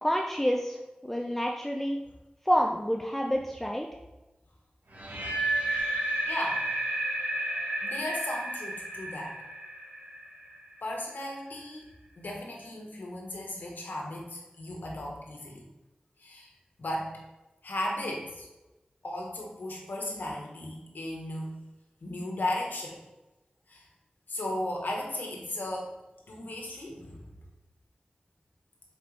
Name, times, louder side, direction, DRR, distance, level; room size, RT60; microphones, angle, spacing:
voice 1, 0.0-0.8 1.0-2.0 2.5-3.9, equal, 10° left, 1 dB, 0.6 m, -28 dB
sound 1, 4.9-10.9, right 1 dB, 70° right, 1.3 m, -32 dB
voice 2, 6.3-6.6 7.8-9.4 10.8-11.9 12.2-15.6 16.2-16.5 16.8-17.2 17.6-18.5 19.0-21.7 22.0-23.0 23.7-23.8 24.3-25.9 26.3-27.3, left 1 dB, 85° left, 0 dB, 1.3 m, -35 dB
6.6 x 4.7 x 3.3 m, 1.0 s
cardioid pair, 45°, 3 cm